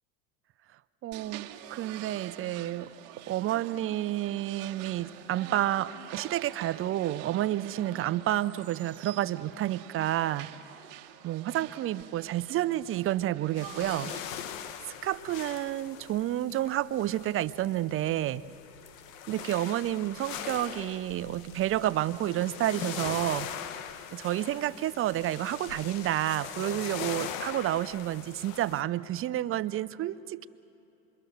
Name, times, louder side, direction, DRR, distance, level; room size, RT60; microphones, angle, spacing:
voice 1, 1.0-2.9 3.3-10.5 11.2-14.1 15.0-18.5 19.3-23.5 24.1-30.5, right 13 dB, 30° right, 15 dB, 0.6 m, -30 dB
sound 1, 1.1-14.2, right 12 dB, 60° right, 1.6 m, -46 dB
sound 2, 13.6-28.8, left 9 dB, 70° left, 1.4 m, -41 dB
26.5 x 23.0 x 6.5 m, 2.9 s
hypercardioid pair, 95°, 41 cm